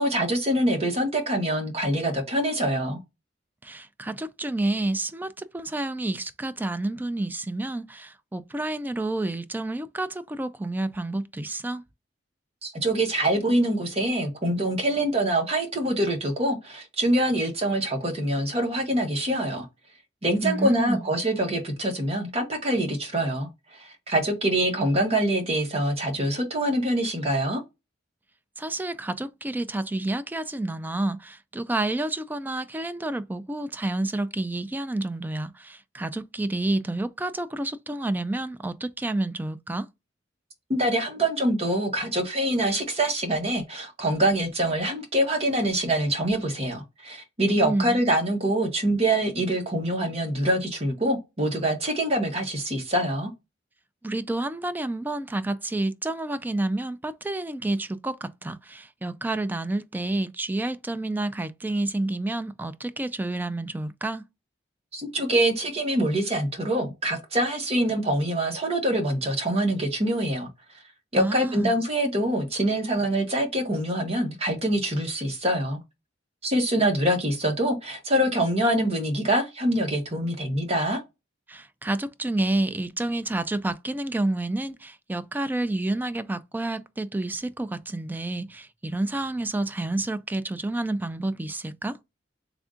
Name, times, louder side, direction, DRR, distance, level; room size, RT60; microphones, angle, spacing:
voice 1, 0.0-3.0 12.6-19.7 20.2-27.6 40.7-53.3 64.9-70.5 71.1-75.8 76.4-81.0, right 1 dB, 35° right, 1.1 m, -25 dB
voice 2, 3.6-11.8 20.4-21.1 28.6-39.9 47.6-48.0 54.0-64.2 71.1-71.7 81.5-92.0, right 2 dB, 10° right, 0.3 m, -29 dB
3.4 x 2.4 x 3.7 m
head